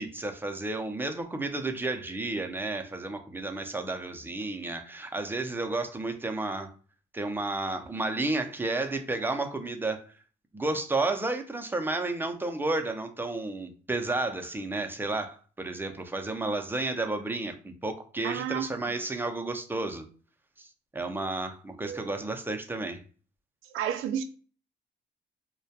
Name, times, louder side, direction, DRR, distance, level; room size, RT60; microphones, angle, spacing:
voice 1, 0.0-6.7 7.1-10.0 10.5-20.1 20.6-23.0, right 2 dB, 10° right, 0.4 m, -32 dB
voice 2, 18.2-18.7 21.8-22.1 23.7-24.2, right 9 dB, 90° right, 0.4 m, -31 dB
2.2 x 2.1 x 2.7 m
cardioid pair, 90°, 20 cm